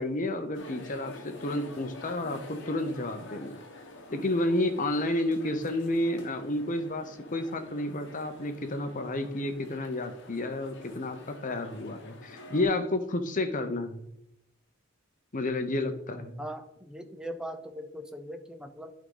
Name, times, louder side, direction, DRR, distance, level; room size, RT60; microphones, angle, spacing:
voice 1, 0.0-3.6 4.1-14.0 15.3-16.4, left 1 dB, 40° left, 8 dB, 0.8 m, -31 dB
sound 1, 0.5-12.6, left 2 dB, 60° left, 1.1 m, -48 dB
voice 2, 16.4-18.9, equal, 5° right, 6 dB, 0.6 m, -40 dB
11.0 x 3.8 x 3.9 m, 0.81 s
head